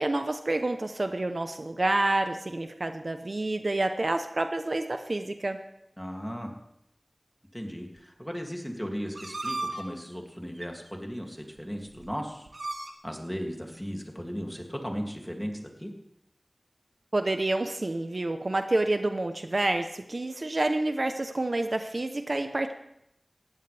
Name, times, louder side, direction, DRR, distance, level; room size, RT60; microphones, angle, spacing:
voice 1, 0.0-5.6 17.1-22.7, right 2 dB, 55° right, 7 dB, 0.9 m, -28 dB
voice 2, 6.0-6.5 7.5-12.5 13.0-15.9, equal, 5° left, 1 dB, 2.7 m, -36 dB
sound 1, 9.1-9.8 10.6-10.7 11.6-11.7 11.9-12.1 12.5-12.9, right 2 dB, 85° right, 1.6 m, -35 dB
19.0 x 15.0 x 3.5 m, 0.79 s
wide cardioid pair, 60°, 0 cm